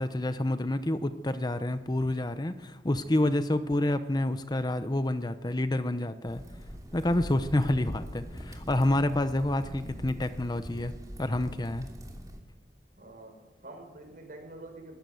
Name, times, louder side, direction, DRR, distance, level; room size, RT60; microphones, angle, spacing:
voice 1, 0.0-6.4 6.9-10.9 11.2-11.9, left 1 dB, 25° left, 11 dB, 0.8 m, -28 dB
sound 1, 6.3-12.4, equal, 20° right, 2.9 m, -43 dB
voice 2, 13.0-15.0, right 2 dB, 50° right, 4 dB, 5.1 m, -47 dB
21.5 x 18.0 x 7.9 m, 1.2 s
head